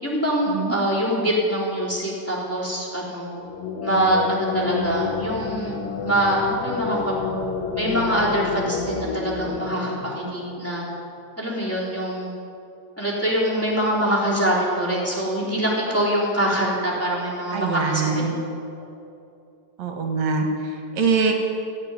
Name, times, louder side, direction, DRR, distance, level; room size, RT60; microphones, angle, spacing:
voice 1, 0.0-3.3 3.8-7.1 7.7-10.8 11.4-12.3 13.0-18.2, right 1 dB, 5° left, -5 dB, 3.2 m, -24 dB
sound 1, 3.3-10.8, left 5 dB, 65° left, 1.6 m, -29 dB
voice 2, 17.5-18.4 19.8-21.3, right 4 dB, 60° right, 3 dB, 2.5 m, -23 dB
15.5 x 7.5 x 9.7 m, 2.6 s
omnidirectional pair, 3.7 m